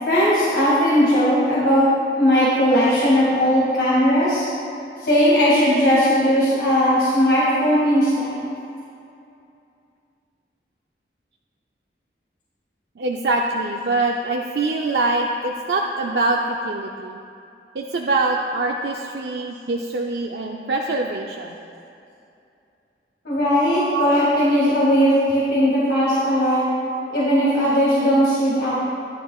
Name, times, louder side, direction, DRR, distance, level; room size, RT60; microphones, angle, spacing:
voice 1, 0.1-1.9 2.2-4.5 5.0-8.4 23.2-26.7 27.1-28.9, equal, 65° left, -8 dB, 2.1 m, -18 dB
voice 2, 13.0-17.2 17.7-21.6 23.9-24.0 26.9-27.1, right 2 dB, 70° right, 0 dB, 0.5 m, -24 dB
14.0 x 10.0 x 2.4 m, 2.6 s
head